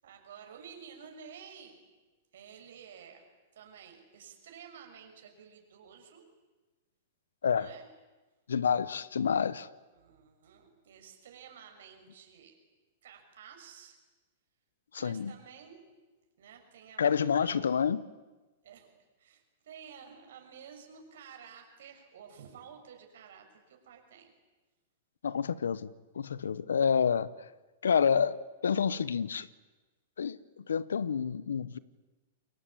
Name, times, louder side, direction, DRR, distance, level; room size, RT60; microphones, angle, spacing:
voice 1, 0.0-1.8 2.3-3.3 3.5-6.2 7.5-7.9 9.9-12.6 13.0-14.0 15.0-15.9 16.4-17.8 18.6-18.9 19.2-24.3, right 7 dB, 75° right, 6.4 m, -52 dB
voice 2, 8.5-9.7 14.9-15.3 17.0-18.0 25.2-27.3 27.8-29.5 30.2-31.8, left 7 dB, 90° left, 1.0 m, -28 dB
28.5 x 22.0 x 8.7 m
hypercardioid pair, 120°, 0 cm